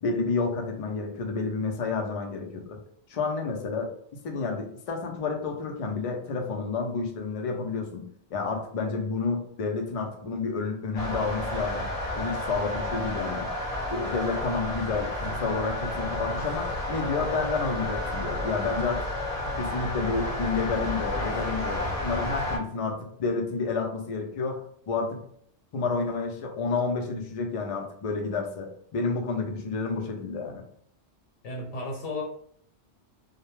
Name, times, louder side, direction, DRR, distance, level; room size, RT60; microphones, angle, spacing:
voice 1, 0.0-2.8 3.1-3.9 4.2-8.0 8.3-11.9 12.2-13.5 13.9-19.1 19.6-25.2 25.7-30.6, left 4 dB, 70° left, 2 dB, 0.3 m, -30 dB
sound 1, 10.9-22.6, left 1 dB, 35° left, 0.7 m, -31 dB
voice 2, 31.4-32.2, left 2 dB, 90° left, -1 dB, 1.0 m, -33 dB
2.1 x 2.0 x 3.0 m, 0.63 s
omnidirectional pair, 1.2 m